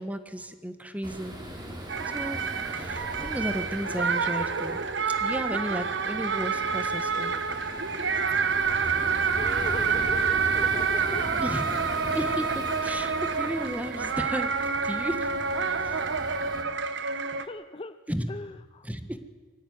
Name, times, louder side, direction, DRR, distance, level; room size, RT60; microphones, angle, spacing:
voice 1, 0.0-1.4 2.1-2.4 2.7-4.8 5.2-7.3 11.4-11.8 12.1-15.3 15.8-15.9 18.1-18.3 18.8-19.2, equal, 10° right, 9 dB, 1.4 m, -33 dB
sound 1, 1.0-16.6, equal, 25° right, 3.7 m, -40 dB
sound 2, 1.9-17.5, right 5 dB, 65° right, 1.2 m, -28 dB
voice 2, 9.3-11.3 17.4-18.0 18.3-18.9, left 2 dB, 30° left, 12 dB, 0.6 m, -39 dB
23.5 x 15.5 x 9.5 m, 1.5 s
head